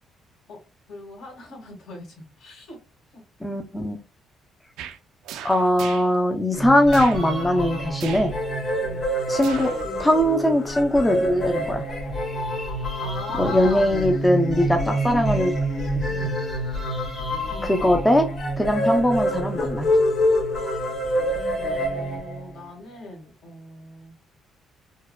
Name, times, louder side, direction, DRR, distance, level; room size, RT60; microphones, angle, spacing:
voice 1, 0.9-2.8 3.1-3.2 8.8-9.0 13.0-13.9 21.6-24.1, left 3 dB, 70° left, 0 dB, 1.6 m, -39 dB
voice 2, 3.4-4.0 5.4-8.3 9.3-9.7 10.0-11.8 13.4-15.5 16.1-16.4 17.6-18.3 18.6-19.9, left 1 dB, 10° left, 4 dB, 0.4 m, -21 dB
sound 1, 4.8-5.0 5.2-6.1 6.9-7.2 8.0-8.3 9.4-9.8 10.2-10.3, right 9 dB, 90° right, 0.4 m, -37 dB
sound 2, 6.5-22.6, equal, 35° left, 1.7 m, -26 dB
4.5 x 2.1 x 2.2 m, 0.30 s
cardioid pair, 140°, 0 cm